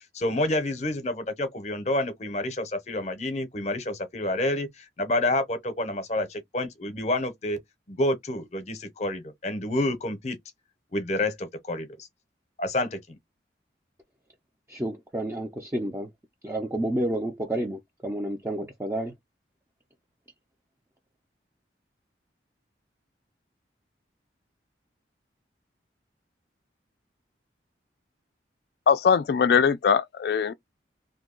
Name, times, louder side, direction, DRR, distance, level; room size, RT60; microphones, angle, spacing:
voice 1, 0.1-7.6 7.9-10.4 10.9-12.0 12.6-13.0, left 1 dB, 40° left, 0.7 m, -28 dB
voice 2, 14.7-16.1 16.4-19.1, right 1 dB, 15° right, 0.5 m, -30 dB
voice 3, 28.9-30.5, left 6 dB, 60° left, 0.3 m, -21 dB
2.7 x 2.3 x 3.7 m
head